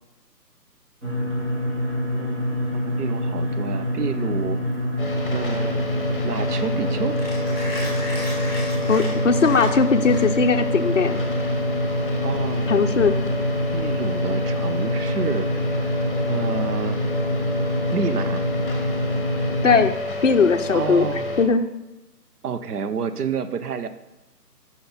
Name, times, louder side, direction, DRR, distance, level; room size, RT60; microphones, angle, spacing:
sound 1, 1.0-19.8, equal, 45° right, 2.3 m, -25 dB
voice 1, 2.1-4.6 5.3-5.8 6.2-7.2 11.8-11.9 12.2-12.7 13.7-15.5 16.3-17.0 17.9-18.5 20.7-21.3 22.4-23.9, right 6 dB, 65° right, 11 dB, 0.7 m, -29 dB
Mechanisms, 4.7-10.6, left 1 dB, 5° right, 1.7 m, -36 dB
sound 2, 5.0-21.5, left 2 dB, 30° left, 0.8 m, -30 dB
voice 2, 8.9-11.2 12.7-13.2 19.6-20.0 20.2-21.1 21.4-21.6, left 5 dB, 50° left, 7 dB, 0.5 m, -19 dB
5.8 x 5.7 x 4.0 m, 1.0 s
figure-of-eight pair, 165°, 50 cm